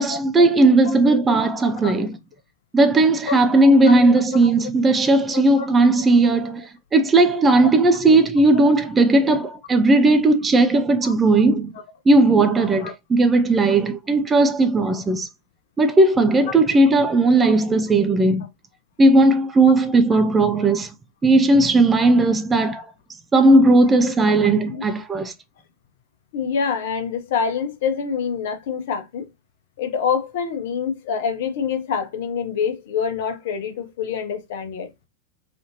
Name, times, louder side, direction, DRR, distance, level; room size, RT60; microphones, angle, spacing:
voice 1, 0.0-2.2 2.7-11.7 12.1-15.3 15.8-18.4 19.0-20.9 21.2-22.9 23.3-25.3, right 2 dB, 15° right, 0.4 m, -16 dB
voice 2, 3.9-4.5 5.3-5.4 8.5-8.7 11.0-11.1 12.8-12.9 16.5-16.6 20.1-20.2 24.7-24.8 26.3-29.3 29.8-34.9, left 6 dB, 55° left, 0.8 m, -26 dB
3.4 x 2.7 x 2.8 m
figure-of-eight pair, 90°, 0 cm